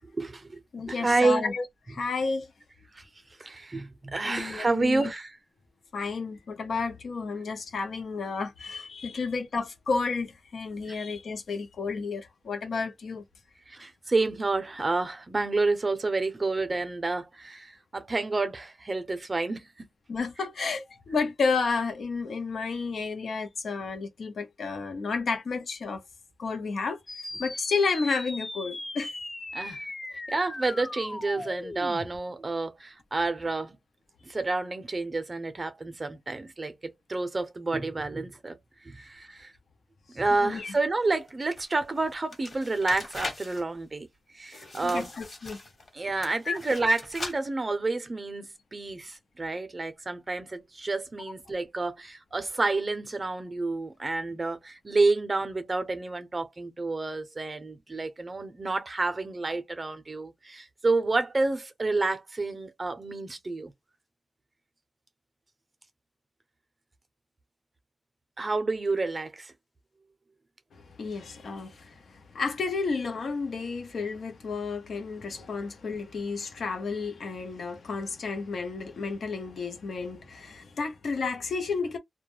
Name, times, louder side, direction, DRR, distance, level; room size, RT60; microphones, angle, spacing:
voice 1, 0.0-1.4 2.9-3.1 3.4-5.4 10.9-11.0 13.7-19.9 29.5-29.8 30.1-33.7 34.2-38.6 38.8-39.5 40.1-44.1 44.3-45.1 45.9-63.7 68.4-69.5, right 3 dB, 35° right, 0.5 m, -29 dB
voice 2, 0.7-2.5 4.2-5.1 5.9-13.2 20.1-26.0 26.4-27.0 27.4-29.1 40.4-40.7 44.8-45.6 46.5-46.6 70.7-71.9 72.3-82.0, left 4 dB, 75° left, 0.7 m, -31 dB
sound 1, 27.1-32.1, left 2 dB, 25° left, 0.5 m, -38 dB
sound 2, 41.1-43.6 44.5-45.9 46.2-47.3, left 2 dB, 45° left, 1.1 m, -40 dB
2.2 x 2.1 x 2.9 m
wide cardioid pair, 100°, 0 cm